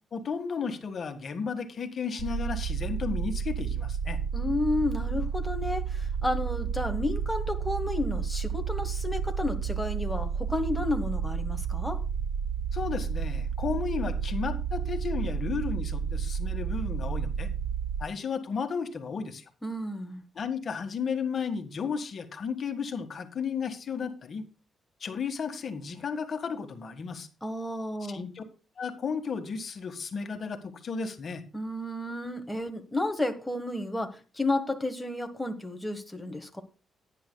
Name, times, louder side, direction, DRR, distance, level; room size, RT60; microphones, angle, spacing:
voice 1, 0.1-4.2 12.7-17.5 18.0-19.4 20.3-24.4 25.0-27.3 28.1-28.4 28.8-31.4, left 5 dB, 45° left, 7 dB, 1.6 m, -33 dB
sound 1, 2.2-18.0, right 7 dB, 50° right, 2.6 m, -31 dB
voice 2, 4.3-12.0 19.6-20.2 27.4-28.2 31.5-36.6, left 2 dB, 5° left, 4 dB, 1.4 m, -32 dB
17.5 x 9.9 x 2.3 m, 0.35 s
cardioid pair, 115°, 0 cm